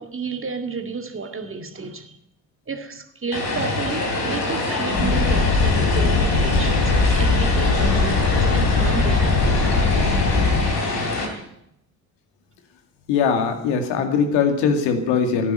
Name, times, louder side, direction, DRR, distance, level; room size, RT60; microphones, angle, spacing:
voice 1, 0.0-2.2 2.7-9.7, right 4 dB, 25° right, 6 dB, 2.1 m, -31 dB
Vehicle, 3.3-11.3, left 2 dB, 85° left, 3.3 m, -25 dB
sound 1, 5.0-10.6, left 4 dB, 45° left, 3.3 m, -20 dB
voice 2, 13.1-15.5, left 6 dB, 65° left, 6 dB, 2.3 m, -21 dB
15.0 x 10.0 x 9.1 m, 0.77 s
figure-of-eight pair, 50°, 48 cm